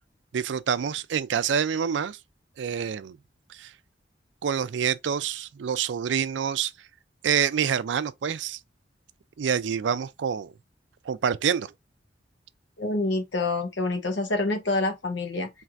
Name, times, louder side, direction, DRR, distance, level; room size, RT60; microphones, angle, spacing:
voice 1, 0.3-2.2 2.6-3.2 3.5-3.7 4.4-6.7 7.2-8.6 9.4-10.5 11.1-11.7, right 7 dB, 85° right, 0.4 m, -27 dB
voice 2, 12.8-15.5, left 2 dB, 85° left, 1.0 m, -27 dB
4.5 x 3.2 x 2.5 m
head